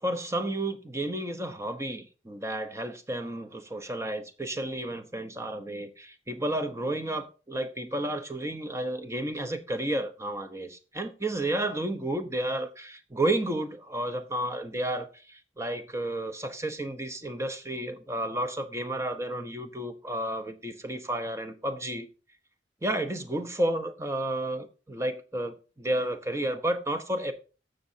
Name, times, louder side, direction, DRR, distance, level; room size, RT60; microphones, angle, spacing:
voice 1, 0.0-22.1 22.8-27.3, right 1 dB, 15° right, 1.0 m, -32 dB
15.5 x 6.6 x 2.8 m
head